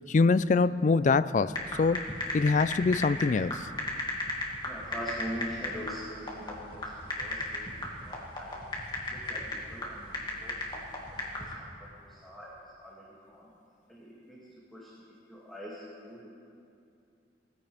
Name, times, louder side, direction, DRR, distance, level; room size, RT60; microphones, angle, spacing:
voice 1, 0.1-2.1 2.3-3.7, left 4 dB, 45° left, 0.4 m, -24 dB
sound 1, 1.5-11.5, left 2 dB, 25° left, 2.4 m, -36 dB
voice 2, 4.6-6.9 7.2-8.6 9.1-13.5 13.9-16.2, equal, ahead, 2.4 m, -43 dB
21.5 x 15.5 x 3.5 m
head